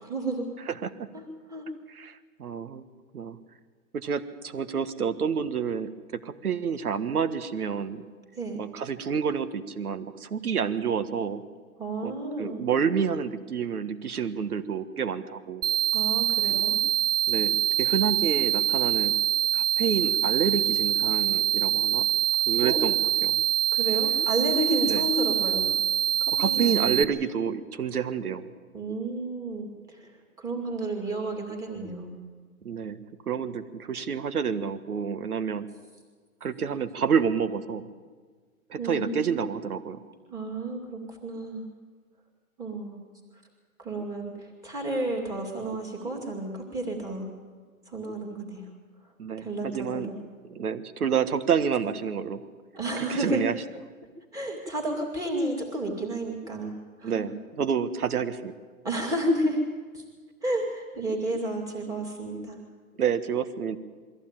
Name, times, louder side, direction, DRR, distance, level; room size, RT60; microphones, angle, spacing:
voice 1, 0.1-0.5 1.1-1.2 1.5-1.7 8.4-8.6 11.8-12.6 15.9-16.8 22.6-22.8 23.7-25.7 26.2-27.0 28.7-30.1 30.4-32.1 38.8-39.3 40.3-41.7 42.6-43.0 43.8-47.3 47.9-48.6 49.4-50.2 52.7-53.4 54.3-56.7 57.0-57.3 58.8-59.6 59.9-60.0 60.4-62.6, right 1 dB, 10° right, 0 dB, 2.3 m, -31 dB
voice 2, 0.6-1.1 1.9-2.8 3.1-3.4 3.9-8.0 8.5-11.4 12.0-15.6 16.5-16.6 17.3-19.2 19.5-22.1 22.5-23.4 24.8-25.0 26.4-28.5 32.6-33.0 33.3-35.6 36.4-37.8 38.7-40.0 49.2-50.1 50.5-52.4 53.0-53.5 57.0-58.5 63.0-63.8, right 7 dB, 80° right, 12 dB, 1.6 m, -29 dB
sound 1, 15.6-27.0, right 10 dB, 55° right, 0.7 m, -25 dB
22.5 x 15.0 x 9.0 m, 1.5 s
hypercardioid pair, 160°, 44 cm